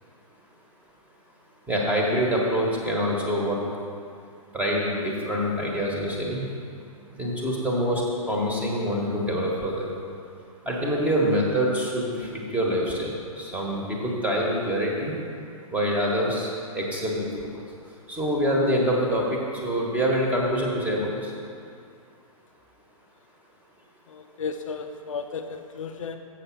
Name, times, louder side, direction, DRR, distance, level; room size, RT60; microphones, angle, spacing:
voice 1, 1.7-3.6 4.5-6.4 7.2-8.0 8.3-9.9 10.6-15.1 15.7-17.3 18.1-21.3, equal, 5° right, -2 dB, 1.4 m, -25 dB
voice 2, 24.1-26.2, left 5 dB, 60° left, 6 dB, 0.6 m, -34 dB
7.5 x 6.4 x 6.0 m, 2.4 s
figure-of-eight pair, 120°, 19 cm